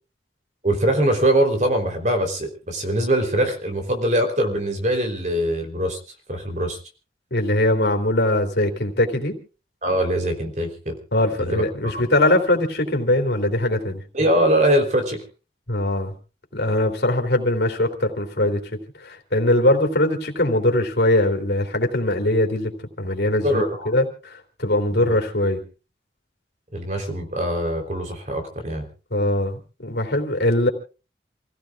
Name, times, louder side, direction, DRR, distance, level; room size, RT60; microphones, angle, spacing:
voice 1, 0.6-6.0 6.3-6.8 9.8-11.0 11.4-12.1 14.1-15.2 23.4-23.9 24.9-25.2 26.7-28.9, right 1 dB, 40° right, 5 dB, 3.7 m, -22 dB
voice 2, 7.3-9.3 11.1-14.0 15.7-16.1 16.5-18.6 19.0-22.7 23.0-25.6 29.1-30.7, left 1 dB, 75° left, 3 dB, 3.3 m, -21 dB
28.5 x 16.0 x 2.5 m, 0.34 s
head